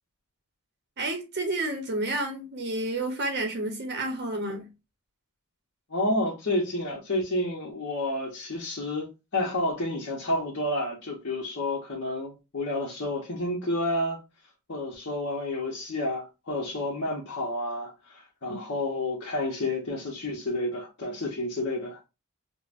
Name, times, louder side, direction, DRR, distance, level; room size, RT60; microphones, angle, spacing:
voice 1, 1.0-4.7, right 2 dB, 50° right, 0.7 m, -30 dB
voice 2, 5.9-14.2 14.7-22.1, left 1 dB, 55° left, 0.9 m, -30 dB
5.0 x 2.1 x 2.5 m
head